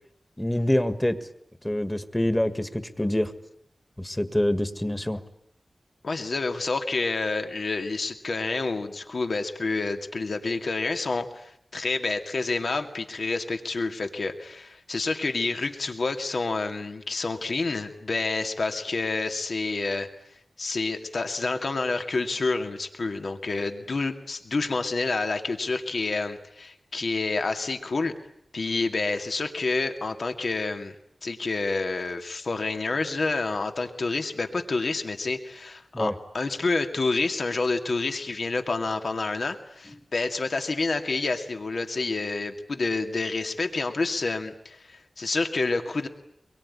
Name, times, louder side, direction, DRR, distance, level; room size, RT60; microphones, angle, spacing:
voice 1, 0.4-1.2 1.6-3.3 4.0-5.2 35.9-36.1, left 1 dB, 10° left, 11 dB, 1.8 m, -25 dB
voice 2, 6.0-20.1 20.6-28.1 28.5-30.9 31.2-46.1, left 3 dB, 70° left, 6 dB, 2.3 m, -28 dB
24.0 x 22.5 x 9.8 m, 0.75 s
wide cardioid pair, 95°, 0 cm